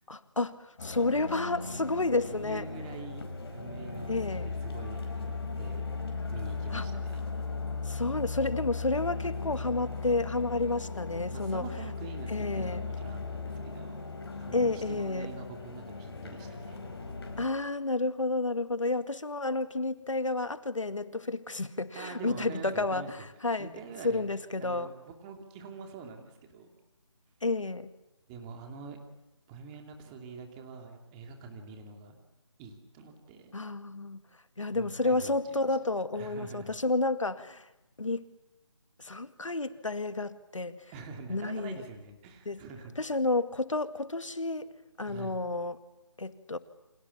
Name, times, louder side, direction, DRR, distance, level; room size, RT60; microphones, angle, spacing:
voice 1, 0.1-2.7 4.1-4.5 6.7-6.9 7.9-11.6 12.3-12.8 14.5-15.3 17.4-23.7 24.0-24.9 27.4-27.9 33.5-34.2 34.6-37.7 38.0-38.2 39.0-40.8 41.3-41.8 42.5-42.6 43.0-44.7 45.0-45.8 46.2-46.6, left 2 dB, 85° left, 11 dB, 2.0 m, -31 dB
sound 1, 0.8-17.5, left 4 dB, 55° left, 5.4 m, -37 dB
voice 2, 2.3-3.2 3.5-5.8 6.3-7.2 11.1-14.0 14.4-16.8 21.9-23.3 23.6-24.2 24.6-26.7 28.3-29.0 29.5-32.2 32.6-33.5 34.7-35.8 36.1-36.8 40.9-42.9 45.0-45.4, right 4 dB, 15° right, 3 dB, 2.8 m, -45 dB
29.5 x 26.0 x 7.2 m, 0.92 s
figure-of-eight pair, 160°, 16 cm